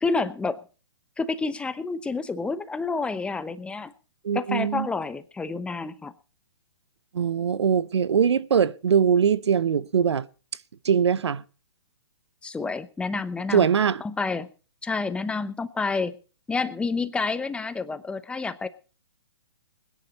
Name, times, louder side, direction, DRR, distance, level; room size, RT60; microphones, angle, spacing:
voice 1, 0.0-0.6 1.2-3.9 4.3-6.1 12.4-13.6 14.0-14.5 14.8-16.1 16.5-18.7, left 4 dB, 5° left, 0.9 m, -29 dB
voice 2, 4.2-4.9 7.1-10.3 10.8-11.4 13.5-14.0, right 7 dB, 80° right, 0.9 m, -22 dB
20.5 x 10.5 x 4.2 m
hypercardioid pair, 135°, 14 cm